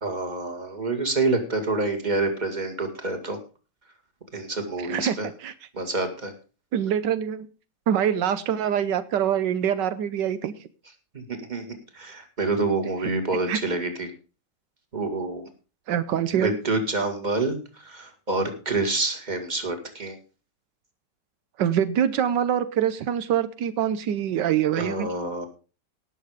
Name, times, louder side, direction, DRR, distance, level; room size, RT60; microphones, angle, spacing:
voice 1, 0.0-3.4 4.3-5.3 5.7-6.3 11.1-14.1 14.9-15.5 16.3-20.2 24.8-25.5, right 2 dB, 25° right, 6 dB, 2.2 m, -27 dB
voice 2, 4.8-5.1 5.4-5.5 6.7-7.5 7.9-10.5 13.5-13.6 15.9-16.6 21.6-25.1, right 9 dB, 85° right, 13 dB, 1.5 m, -24 dB
18.0 x 6.7 x 5.0 m, 0.35 s
omnidirectional pair, 1.9 m